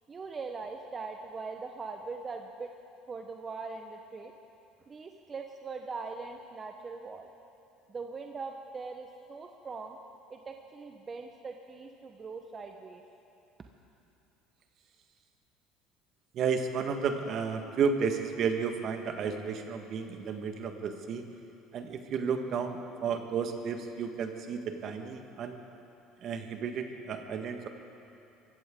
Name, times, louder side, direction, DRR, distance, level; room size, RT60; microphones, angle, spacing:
voice 1, 0.1-2.7 3.1-4.3 4.9-7.3 7.9-10.0 10.3-13.0, right 4 dB, 30° right, 4 dB, 1.1 m, -41 dB
voice 2, 16.3-21.2 21.7-25.6 26.2-27.7, right 6 dB, 55° right, 5 dB, 1.6 m, -32 dB
23.5 x 15.5 x 3.8 m, 2.7 s
supercardioid pair, 85°, 0 cm